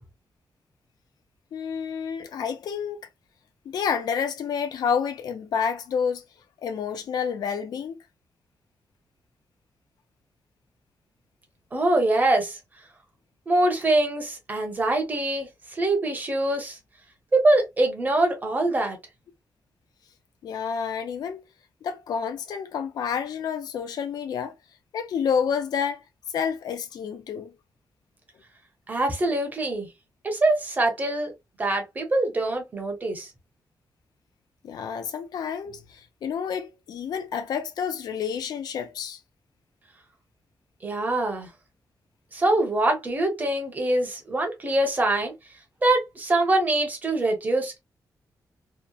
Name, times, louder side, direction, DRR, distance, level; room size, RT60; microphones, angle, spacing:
voice 1, 1.5-3.0 3.7-6.2 6.6-8.0 20.4-21.4 21.8-24.5 24.9-26.0 26.3-27.5 34.6-39.2, left 7 dB, 70° left, 0.4 m, -29 dB
voice 2, 11.7-12.6 13.5-16.8 17.3-19.0 28.9-29.9 30.2-31.3 31.6-33.3 40.8-41.5 42.3-45.3 45.8-47.8, right 2 dB, 25° right, 0.7 m, -24 dB
2.8 x 2.0 x 2.2 m
wide cardioid pair, 165°, 7 cm